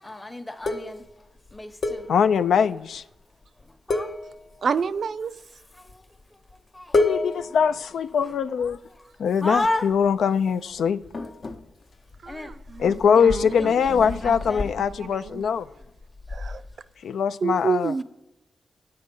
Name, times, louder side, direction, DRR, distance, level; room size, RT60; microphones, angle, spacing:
voice 1, 0.0-2.1 3.7-4.1 5.7-6.4 6.7-7.7 8.2-8.3 8.9-9.0 9.4-9.9 10.2-10.4 10.8-11.3 12.3-12.5 13.1-13.2 13.6-14.7 15.5-15.6, left 2 dB, 15° left, 0.8 m, -33 dB
sound 1, 0.6-2.6 2.9-3.2 3.4-3.6 3.9-5.0 5.7-6.2 6.5-6.6 6.9-9.0 9.5-10.2 10.5-16.8, left 3 dB, 55° left, 0.8 m, -31 dB
voice 2, 2.1-3.0 7.0-8.8 9.2-11.0 12.8-15.7 17.0-17.9, left 7 dB, 85° left, 0.3 m, -22 dB
voice 3, 4.6-5.3 12.2-13.0 13.2-14.4 14.8-15.5 16.3-16.6 17.4-18.0, right 5 dB, 65° right, 0.4 m, -29 dB
8.9 x 7.7 x 5.3 m
cardioid pair, 80°, 0 cm